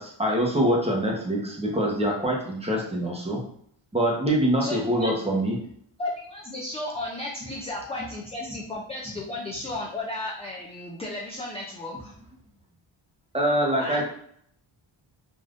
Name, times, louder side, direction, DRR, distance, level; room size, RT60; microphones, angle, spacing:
voice 1, 0.0-3.4 3.9-5.5 13.3-14.0, right 1 dB, 15° right, -2 dB, 0.9 m, -24 dB
voice 2, 4.6-5.1 6.0-12.1 13.8-14.0, left 2 dB, 15° left, -3 dB, 0.4 m, -34 dB
3.5 x 2.6 x 2.5 m, 0.66 s
wide cardioid pair, 100°, 48 cm